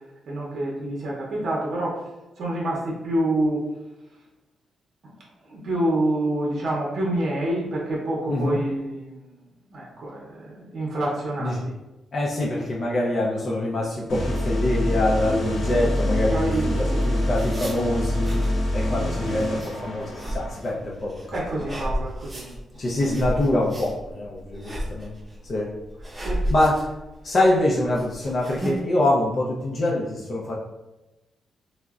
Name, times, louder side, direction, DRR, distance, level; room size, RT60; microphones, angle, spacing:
voice 1, 0.3-2.0 2.4-3.7 5.4-9.4 9.7-11.8 16.3-17.0 21.3-22.5 26.2-26.4, right 1 dB, 60° right, -4 dB, 0.6 m, -27 dB
voice 2, 8.3-8.6 11.4-11.6 12.1-21.8 22.8-25.1 25.4-25.7 26.5-26.9 27.2-30.6, left 1 dB, 40° left, -3 dB, 0.4 m, -25 dB
sound 1, 14.1-20.6, equal, 80° left, 0.9 m, -26 dB
sound 2, 16.8-28.8, right 1 dB, 20° right, 0.7 m, -34 dB
3.6 x 2.0 x 2.3 m, 1.0 s
cardioid pair, 120°, 0 cm